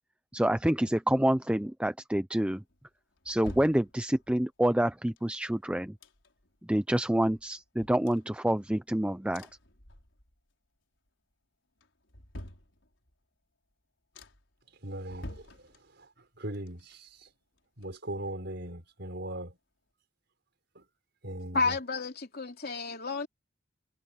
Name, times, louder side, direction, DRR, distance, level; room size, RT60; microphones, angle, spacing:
voice 1, 0.3-2.6 3.3-5.9 6.7-9.5, right 1 dB, 5° right, 0.5 m, -27 dB
sound 1, 2.7-4.4 5.2-6.6 6.9-7.0 7.3-8.9 9.3-10.5 10.8-11.3 11.8-13.2 13.7-13.8 14.1-14.6 15.0-16.2 16.5-18.4 18.7-18.8, left 1 dB, 80° left, 5.0 m, -49 dB
voice 2, 14.8-15.4 16.4-17.1 17.8-19.5 20.8-20.9 21.2-21.8, right 1 dB, 60° right, 5.5 m, -38 dB
voice 3, 21.5-23.3, left 3 dB, 55° left, 3.2 m, -31 dB
head